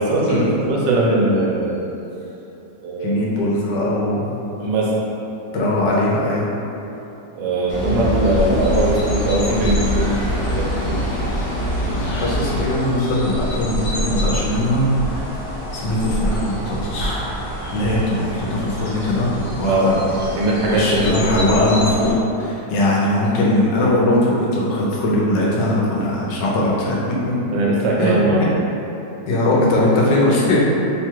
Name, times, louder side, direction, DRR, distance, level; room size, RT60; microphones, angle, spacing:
voice 1, 0.0-1.8 2.8-3.2 4.6-5.0 7.3-11.0 19.6-19.9 20.2-21.5 27.5-28.5, right 1 dB, 90° right, -4 dB, 1.4 m, -20 dB
voice 2, 3.0-4.3 5.5-6.5 11.9-15.4 15.7-17.2 17.7-20.0 20.7-27.6 28.0-28.4 29.3-30.6, left 1 dB, 80° left, -5 dB, 1.4 m, -20 dB
sound 1, 7.7-12.7, equal, 55° left, 0.5 m, -24 dB
sound 2, 8.3-22.1, equal, 40° left, 1.0 m, -28 dB
3.5 x 2.4 x 4.4 m, 3.0 s
omnidirectional pair, 1.9 m